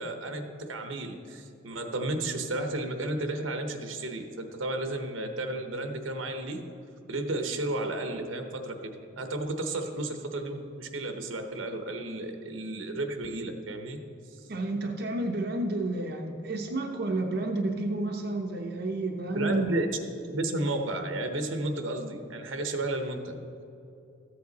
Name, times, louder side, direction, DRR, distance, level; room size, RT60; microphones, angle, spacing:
voice 1, 0.0-6.6 7.1-14.0 14.4-14.5 19.3-19.9 20.1-23.4, right 2 dB, 85° right, 5 dB, 1.0 m, -33 dB
voice 2, 14.5-19.7, right 2 dB, 55° right, 2 dB, 0.7 m, -31 dB
14.0 x 7.9 x 4.1 m, 2.7 s
head